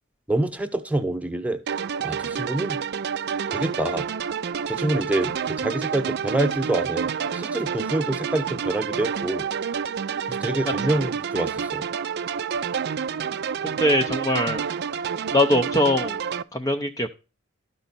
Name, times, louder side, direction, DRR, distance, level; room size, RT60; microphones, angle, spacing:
voice 1, 0.3-1.6 2.0-2.8 3.5-4.1 4.7-9.5 10.3-11.8, right 1 dB, 5° right, 7 dB, 1.0 m, -26 dB
sound 1, 1.7-16.4, right 7 dB, 50° right, 0.4 m, -29 dB
voice 2, 13.8-14.6 15.3-16.2 16.5-17.1, left 1 dB, 15° left, 5 dB, 0.6 m, -21 dB
13.0 x 5.3 x 4.1 m, 0.32 s
head